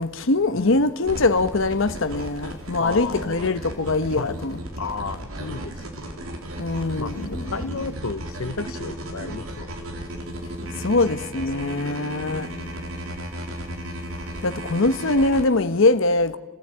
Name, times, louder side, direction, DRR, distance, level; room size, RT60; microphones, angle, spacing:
voice 1, 0.0-4.6 6.6-7.5 10.8-12.5 14.4-16.4, left 2 dB, 65° left, 1.0 m, -22 dB
voice 2, 0.5-0.9 2.8-3.5 4.1-4.4 4.8-5.8 6.1-6.3 7.0-10.1 11.4-11.8 12.3-13.2, left 4 dB, 85° left, 1.0 m, -33 dB
sound 1, 1.0-15.4, right 1 dB, 85° right, 3.8 m, -35 dB
28.5 x 15.5 x 8.9 m
head